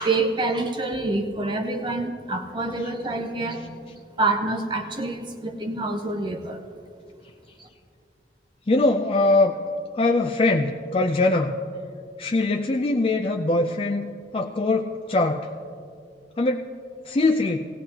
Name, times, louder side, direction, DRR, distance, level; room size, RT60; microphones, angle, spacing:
voice 1, 0.0-3.8 4.2-6.6 7.6-7.7, right 2 dB, 25° right, 4 dB, 0.6 m, -27 dB
voice 2, 8.7-9.6 9.9-11.6 12.2-14.1 14.3-15.5 16.4-16.7 17.1-17.7, left 2 dB, 30° left, 4 dB, 0.4 m, -22 dB
17.5 x 17.0 x 2.9 m, 2.3 s
head